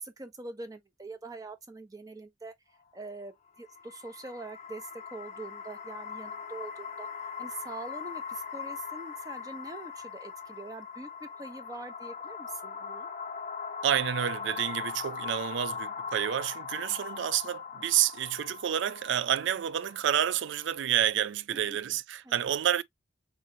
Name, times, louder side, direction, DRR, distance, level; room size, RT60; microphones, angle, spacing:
voice 1, 0.0-2.6 2.9-7.1 7.4-13.1 21.5-21.8 22.2-22.4, right 3 dB, 20° right, 0.7 m, -44 dB
sound 1, 3.6-20.7, left 6 dB, 35° left, 0.5 m, -40 dB
voice 2, 13.8-22.8, right 10 dB, 65° right, 0.4 m, -29 dB
3.8 x 3.1 x 2.6 m
head